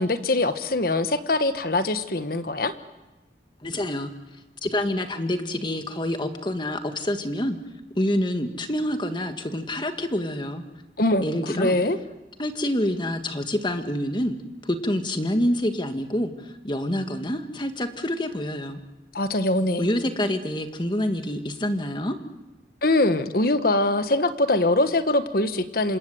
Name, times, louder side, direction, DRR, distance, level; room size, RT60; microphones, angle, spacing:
voice 1, 0.0-2.7 11.0-12.0 19.1-19.9 22.8-26.0, left 2 dB, 55° left, 10 dB, 1.3 m, -23 dB
voice 2, 3.6-4.1 4.6-7.6 8.0-10.6 11.2-11.8 12.4-14.4 14.6-18.8 19.8-22.2, left 1 dB, 25° left, 7 dB, 1.8 m, -27 dB
27.5 x 26.0 x 7.9 m, 1.1 s
head